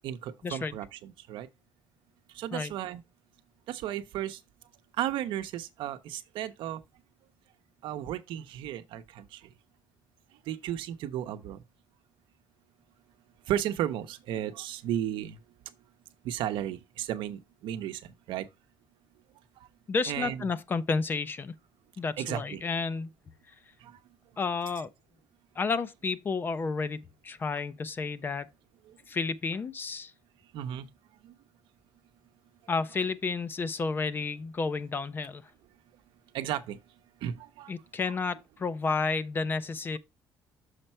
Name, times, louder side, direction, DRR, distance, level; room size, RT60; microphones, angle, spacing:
voice 1, 0.0-1.5 2.4-3.0 3.7-4.4 5.0-6.8 7.8-9.2 10.5-11.6 13.5-15.4 16.2-18.0 18.3-18.5 20.1-20.5 22.2-22.6 30.5-30.9 31.2-31.3 36.3-36.8 37.2-37.7 38.1-38.2, right 11 dB, 75° right, 0.7 m, -34 dB
voice 2, 19.9-21.5 22.0-23.1 24.4-24.9 25.6-28.5 29.1-30.1 32.7-35.4 37.7-40.0, left 4 dB, 25° left, 0.4 m, -31 dB
6.6 x 4.4 x 4.2 m
cardioid pair, 150°, 8 cm